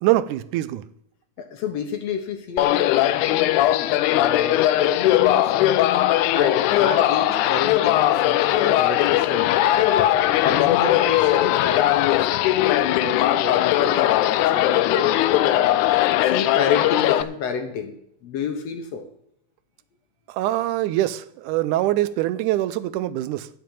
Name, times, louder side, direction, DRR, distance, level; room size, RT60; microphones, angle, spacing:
voice 1, 0.0-0.9 20.3-23.5, right 15 dB, 90° right, 2.2 m, -23 dB
voice 2, 1.4-9.5 10.0-15.6 16.2-17.9 18.2-19.1, left 6 dB, 65° left, 2.0 m, -29 dB
sound 1, 2.6-17.2, left 14 dB, 85° left, 2.1 m, -19 dB
9.3 x 7.6 x 8.7 m
omnidirectional pair, 3.5 m